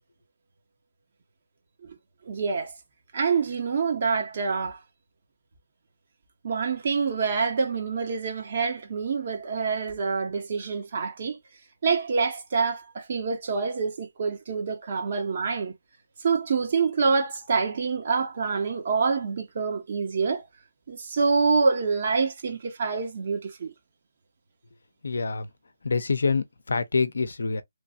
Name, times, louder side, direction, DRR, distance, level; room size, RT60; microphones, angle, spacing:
voice 1, 2.2-2.7 3.1-4.8 6.4-11.4 11.8-15.7 16.2-20.4 20.9-23.7, right 5 dB, 45° right, 1.0 m, -26 dB
voice 2, 25.0-25.5 25.8-27.6, left 4 dB, 75° left, 0.6 m, -26 dB
3.1 x 2.3 x 2.6 m
hypercardioid pair, 160°, 0 cm